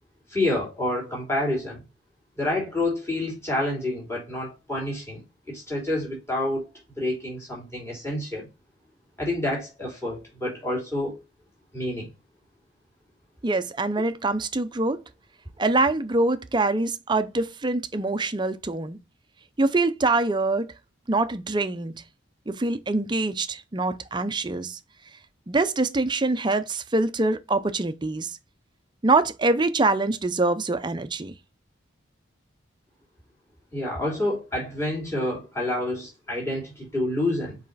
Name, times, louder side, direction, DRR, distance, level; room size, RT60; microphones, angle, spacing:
voice 1, 0.3-1.8 2.4-5.2 5.5-6.7 7.0-8.5 9.2-11.2 11.7-12.1 33.7-37.6, left 1 dB, 15° left, 2.9 m, -28 dB
voice 2, 13.4-15.0 15.6-19.0 19.6-20.7 21.1-21.9 22.5-24.8 25.5-28.4 29.0-31.3, right 2 dB, 20° right, 0.5 m, -24 dB
5.4 x 4.8 x 4.0 m
head